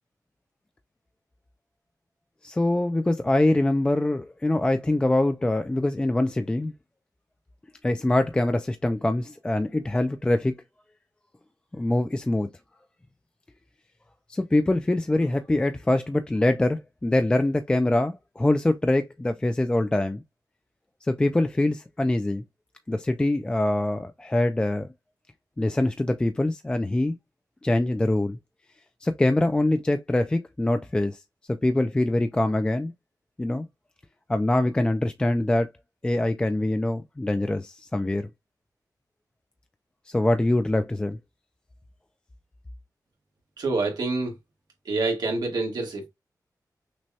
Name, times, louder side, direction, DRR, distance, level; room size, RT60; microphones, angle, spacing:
voice 1, 2.4-6.7 7.8-10.5 11.7-12.5 14.3-20.2 21.1-22.4 22.9-24.9 25.6-27.2 27.6-28.4 29.0-31.2 31.5-32.9 33.4-33.7 34.3-35.7 36.0-38.2 40.1-41.2, left 1 dB, 15° left, 0.3 m, -24 dB
voice 2, 43.6-44.3 44.8-46.1, right 3 dB, 90° right, 1.6 m, -27 dB
6.0 x 2.2 x 2.8 m
wide cardioid pair, 155°, 7 cm